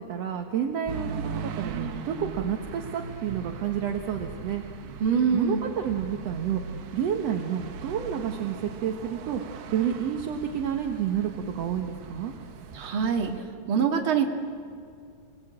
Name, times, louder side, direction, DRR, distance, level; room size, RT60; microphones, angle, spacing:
voice 1, 0.0-4.6 5.3-12.3, right 8 dB, 60° right, 3 dB, 1.8 m, -30 dB
sound 1, 0.9-13.4, right 6 dB, 85° right, 3.1 m, -39 dB
voice 2, 5.0-5.7 12.7-13.3 13.7-14.3, right 6 dB, 40° right, 3 dB, 2.2 m, -24 dB
29.0 x 19.0 x 8.8 m, 2.3 s
omnidirectional pair, 4.4 m